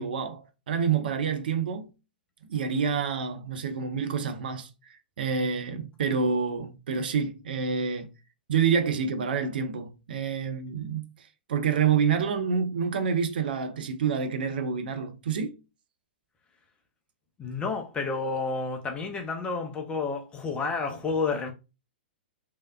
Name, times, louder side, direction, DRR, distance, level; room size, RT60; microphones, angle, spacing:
voice 1, 0.0-1.9 2.5-4.7 5.2-8.1 8.5-11.0 11.5-15.5, right 6 dB, 65° right, 0.5 m, -27 dB
voice 2, 17.4-21.5, left 4 dB, 20° left, 0.6 m, -30 dB
3.2 x 2.8 x 2.3 m
figure-of-eight pair, 110°, 6 cm